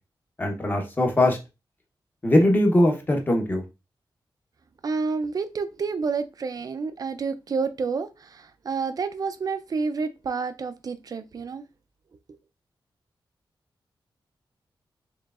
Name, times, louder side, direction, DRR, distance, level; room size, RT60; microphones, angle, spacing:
voice 1, 0.4-1.4 2.2-3.6, left 1 dB, 25° left, 2 dB, 0.9 m, -21 dB
voice 2, 4.8-11.6, right 4 dB, 50° right, 10 dB, 0.4 m, -29 dB
4.6 x 3.1 x 2.4 m, 0.26 s
wide cardioid pair, 150°, 8 cm